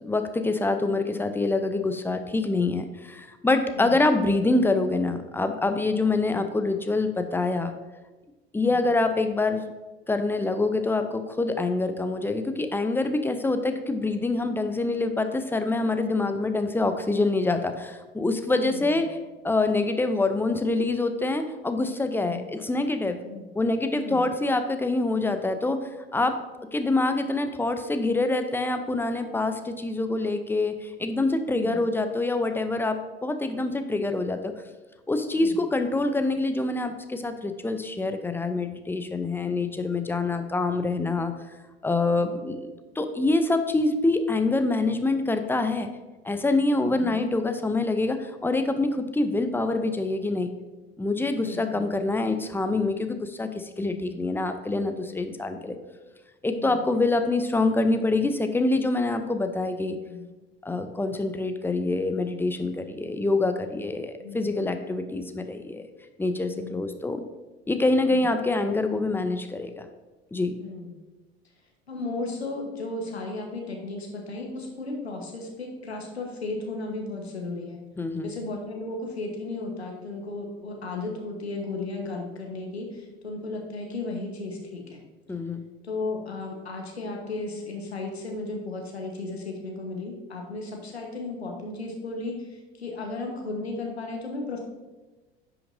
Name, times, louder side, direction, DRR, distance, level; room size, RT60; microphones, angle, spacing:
voice 1, 0.0-7.7 8.5-9.7 10.1-19.2 19.4-23.2 23.5-25.8 26.1-26.4 26.7-34.5 35.1-41.3 41.8-42.7 43.0-45.9 46.2-50.5 51.0-55.8 56.4-60.0 60.6-65.8 66.2-67.2 67.7-69.9 70.3-70.5 78.0-78.3 85.3-85.6, left 2 dB, 5° left, 7 dB, 0.6 m, -25 dB
voice 2, 3.7-4.1 6.2-6.4 8.6-8.8 18.5-19.0 22.2-22.4 23.2-23.4 24.0-24.2 31.5-31.8 35.4-35.6 42.2-42.4 46.8-47.1 51.4-51.9 53.8-54.2 56.5-56.8 60.1-60.2 64.2-64.5 65.0-65.2 66.5-66.9 68.0-68.3 70.6-70.9 71.9-77.8 78.2-85.0 85.8-94.6, left 2 dB, 85° left, 1 dB, 1.3 m, -35 dB
10.0 x 5.8 x 2.7 m, 1.2 s
figure-of-eight pair, 70°, 31 cm